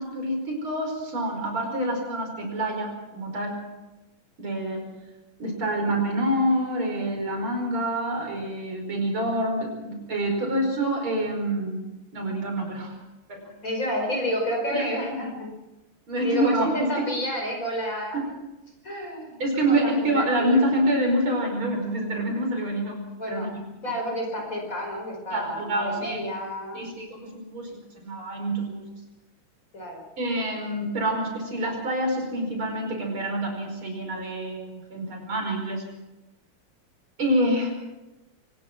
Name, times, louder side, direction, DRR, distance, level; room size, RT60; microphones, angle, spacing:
voice 1, 0.0-3.6 4.4-4.8 5.4-11.8 12.1-12.9 13.3-13.5 14.7-14.9 16.1-16.9 18.1-18.2 19.4-23.5 25.3-26.3 26.7-28.8 30.2-35.8 37.2-37.7, right 1 dB, 85° right, 2 dB, 5.9 m, -27 dB
voice 2, 13.6-15.5 16.2-18.2 18.8-19.4 19.7-20.6 23.2-23.6 23.8-26.8 29.7-30.0, equal, 40° left, 2 dB, 5.4 m, -30 dB
24.0 x 19.5 x 6.1 m, 1.0 s
omnidirectional pair, 2.2 m